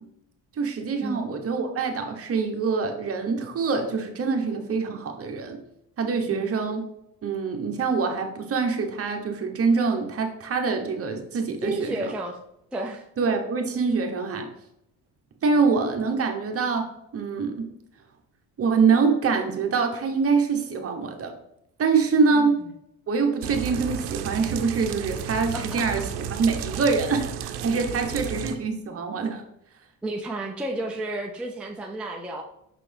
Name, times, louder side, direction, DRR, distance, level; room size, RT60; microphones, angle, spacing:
voice 1, 0.6-5.6 6.0-6.8 7.2-11.9 13.2-14.5 15.4-17.7 18.6-21.3 21.8-22.6 23.1-29.4, right 4 dB, 40° right, 4 dB, 1.1 m, -25 dB
voice 2, 11.6-12.4 12.7-13.0 22.3-22.5 25.5-25.8 30.0-32.4, right 2 dB, 5° right, 0 dB, 0.5 m, -31 dB
sound 1, 23.4-28.6, right 8 dB, 90° right, 0.7 m, -33 dB
6.0 x 5.8 x 3.4 m, 0.81 s
cardioid pair, 120°, 38 cm